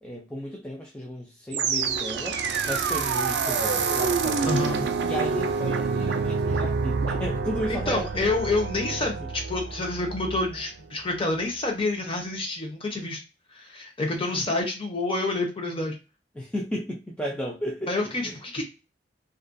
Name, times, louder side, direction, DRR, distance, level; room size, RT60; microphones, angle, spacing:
voice 1, 0.0-2.4 2.7-8.3 9.0-9.1 16.4-18.4, equal, 5° left, -2 dB, 0.4 m, -34 dB
sound 1, 1.5-10.7, right 5 dB, 70° right, 0.4 m, -27 dB
voice 2, 4.4-4.9 7.7-13.2 13.5-16.0 17.9-18.6, left 2 dB, 30° left, 1 dB, 0.7 m, -28 dB
2.4 x 2.2 x 2.5 m, 0.29 s
head